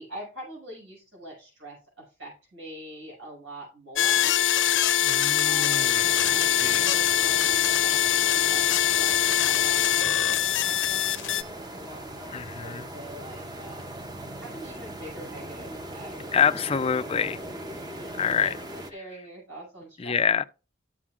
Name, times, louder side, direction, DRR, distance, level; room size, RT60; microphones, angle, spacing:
voice 1, 0.0-4.5 5.4-13.9 14.4-16.6 17.7-20.2, right 1 dB, 85° right, 6.0 m, -44 dB
sound 1, 4.0-11.4, left 11 dB, 80° left, 0.7 m, -23 dB
voice 2, 5.0-6.9 12.3-12.9 16.3-17.4 18.2-18.6 20.0-20.4, left 7 dB, 30° left, 0.4 m, -27 dB
sound 2, 6.0-18.9, right 1 dB, 20° right, 0.7 m, -40 dB
13.0 x 7.3 x 2.4 m
head